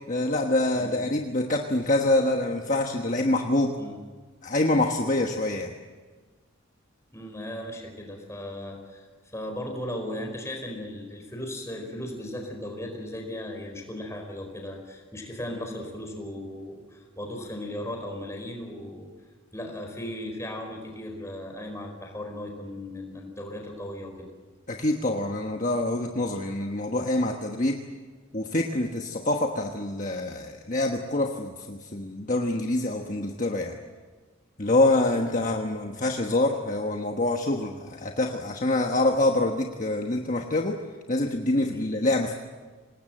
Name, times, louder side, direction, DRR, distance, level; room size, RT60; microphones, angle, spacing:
voice 1, 0.1-3.8 4.4-5.7 24.7-27.8 28.3-33.8 34.6-40.8 41.1-42.3, left 2 dB, 35° left, 2 dB, 1.3 m, -26 dB
voice 2, 7.1-9.1 9.3-19.1 19.5-24.3 35.3-35.4 41.7-41.9, left 1 dB, 15° left, 2 dB, 4.8 m, -37 dB
26.5 x 19.5 x 7.8 m, 1.4 s
head